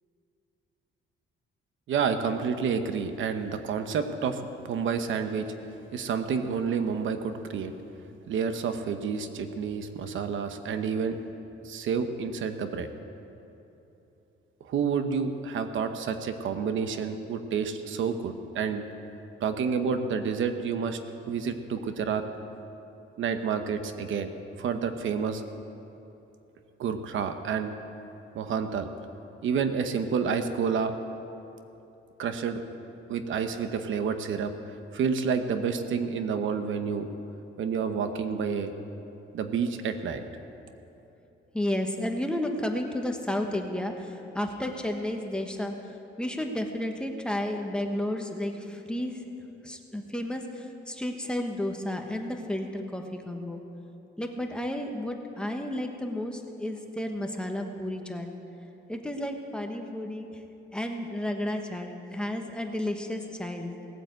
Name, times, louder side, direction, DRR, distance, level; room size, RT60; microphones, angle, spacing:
voice 1, 1.9-5.5 5.9-7.7 8.3-11.2 11.6-12.9 14.6-18.8 19.4-21.0 21.3-22.2 23.2-24.3 24.6-25.4 26.8-27.7 28.3-28.9 29.4-31.0 32.2-32.6 33.1-34.5 34.9-37.1 37.6-38.7 39.3-40.2, right 6 dB, 70° right, 8 dB, 1.0 m, -29 dB
voice 2, 41.5-45.7 46.2-49.2 49.6-53.6 54.2-58.3 58.9-60.3 60.7-63.7, left 1 dB, 5° left, 3 dB, 1.3 m, -32 dB
18.5 x 8.9 x 8.1 m, 3.0 s
cardioid pair, 125°, 21 cm